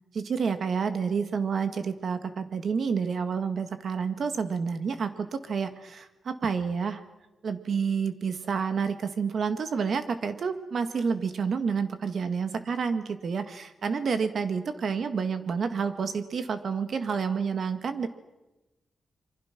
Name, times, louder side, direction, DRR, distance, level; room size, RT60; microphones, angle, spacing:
voice 1, 0.1-7.0 7.4-18.1, right 6 dB, 65° right, 9 dB, 1.9 m, -29 dB
27.0 x 24.5 x 6.1 m, 1.1 s
wide cardioid pair, 105°, 0 cm